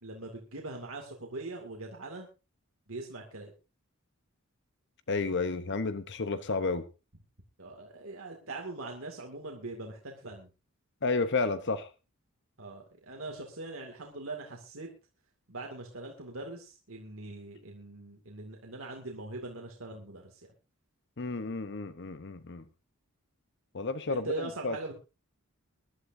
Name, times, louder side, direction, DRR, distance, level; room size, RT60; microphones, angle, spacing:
voice 1, 0.0-2.3 2.9-3.5 7.6-10.5 12.6-14.9 15.5-20.3 24.1-24.9, right 2 dB, 70° right, 2.3 m, -41 dB
voice 2, 5.1-6.8 11.0-11.9 21.2-22.6 23.7-24.9, left 3 dB, 55° left, 0.8 m, -31 dB
23.0 x 11.5 x 2.7 m
head